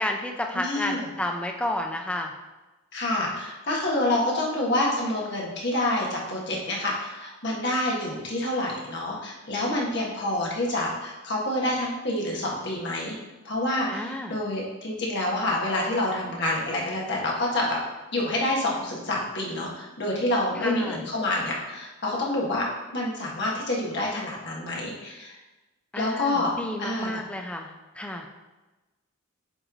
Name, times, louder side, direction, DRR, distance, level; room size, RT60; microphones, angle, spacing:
voice 1, 0.0-2.3 13.9-14.4 20.6-21.0 25.9-28.3, left 1 dB, 5° left, 2 dB, 0.5 m, -31 dB
voice 2, 0.5-1.1 2.9-13.2 13.4-17.8 18.1-22.7 22.9-25.4 25.9-26.5 26.8-27.2, left 1 dB, 55° left, -3 dB, 1.3 m, -27 dB
7.9 x 3.2 x 3.9 m, 1.1 s
head